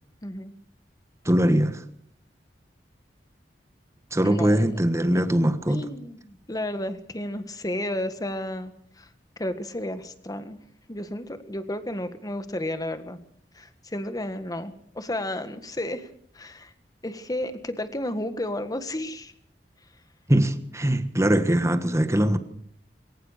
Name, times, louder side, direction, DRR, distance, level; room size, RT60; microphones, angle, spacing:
voice 1, 0.2-0.5 4.2-4.6 5.4-9.1 9.4-10.6 10.9-13.2 13.5-16.1 16.3-16.7 17.0-19.3, left 1 dB, 20° left, 1.6 m, -32 dB
voice 2, 1.2-1.8 4.1-5.8 20.3-22.4, right 1 dB, 15° right, 1.4 m, -21 dB
21.0 x 19.0 x 6.6 m
head